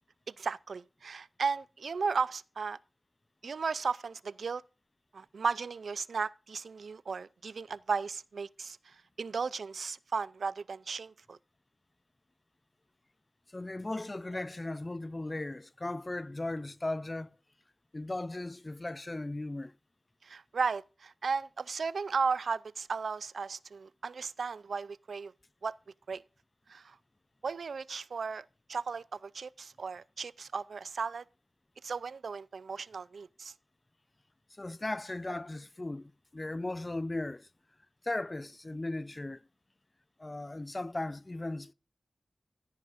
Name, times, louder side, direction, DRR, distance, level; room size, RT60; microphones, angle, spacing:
voice 1, 0.4-2.8 3.4-4.6 5.1-11.4 20.2-25.3 25.6-25.7 26.1-26.2 26.7-27.0 27.4-31.2 31.8-33.5, right 5 dB, 90° right, 0.4 m, -35 dB
voice 2, 13.5-17.3 17.9-19.7 34.6-37.5 38.0-39.4 40.2-41.7, left 2 dB, 30° left, 0.5 m, -37 dB
14.5 x 9.6 x 2.5 m
wide cardioid pair, 75°, 0 cm